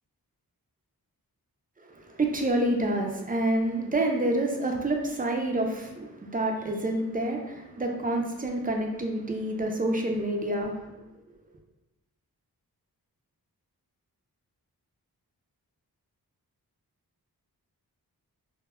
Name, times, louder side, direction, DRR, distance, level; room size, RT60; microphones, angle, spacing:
voice 1, 1.9-10.9, right 1 dB, 25° right, 1 dB, 0.3 m, -28 dB
2.1 x 2.1 x 3.4 m, 0.96 s
wide cardioid pair, 80°, 38 cm